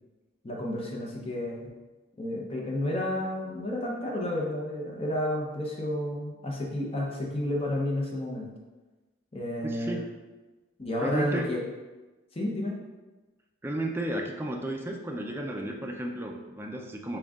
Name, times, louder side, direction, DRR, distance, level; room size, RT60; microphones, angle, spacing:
voice 1, 0.4-1.7 2.2-8.5 9.3-10.0 10.8-11.6 12.3-12.7, left 1 dB, 30° left, -2 dB, 0.7 m, -31 dB
voice 2, 9.6-10.1 11.0-11.5 13.6-17.2, right 1 dB, 10° right, 1 dB, 0.4 m, -33 dB
6.1 x 2.3 x 3.5 m, 1.2 s
head